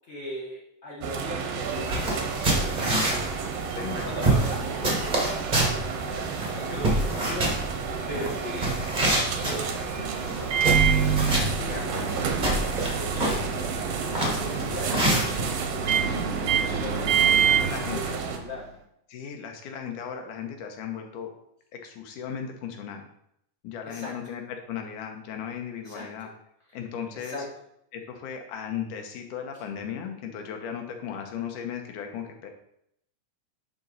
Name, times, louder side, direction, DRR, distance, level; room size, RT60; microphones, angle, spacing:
voice 1, 0.1-3.0 4.0-7.6 8.1-8.7 9.4-18.7 23.8-24.2 25.8-26.3 27.1-27.5, left 1 dB, 50° left, -5 dB, 0.7 m, -39 dB
sound 1, 1.0-18.4, right 6 dB, 70° right, 1.5 m, -32 dB
sound 2, 1.6-15.5, right 1 dB, 40° right, 0.6 m, -28 dB
voice 2, 3.7-4.3 8.1-8.3 14.2-14.5 14.9-15.0 15.8-16.3 17.3-17.4 17.6-18.2 19.1-21.3 21.8-23.1 23.6-26.3 26.7-27.4 27.9-32.5, left 8 dB, 75° left, 3 dB, 2.5 m, -36 dB
Microwave oven, 10.4-18.6, right 7 dB, 90° right, 1.3 m, -26 dB
10.5 x 4.2 x 4.0 m, 0.74 s
omnidirectional pair, 3.8 m